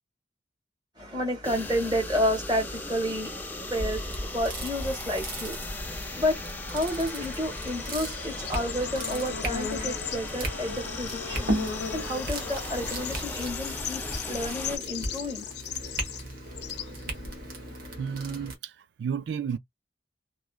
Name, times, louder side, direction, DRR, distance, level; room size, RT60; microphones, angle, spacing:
voice 1, 1.0-3.3 3.7-4.0 4.3-5.6 6.2-6.4 6.7-11.6 11.9-14.0 14.3-15.5, equal, 25° right, 1.8 m, -30 dB
sound 1, 1.4-14.8, left 2 dB, 10° left, 0.5 m, -37 dB
sound 2, 3.6-18.6, right 1 dB, 55° right, 1.1 m, -37 dB
Bird / Insect, 7.3-17.9, left 8 dB, 70° left, 0.4 m, -38 dB
voice 2, 18.0-19.6, right 7 dB, 75° right, 0.3 m, -33 dB
3.1 x 2.4 x 2.3 m
head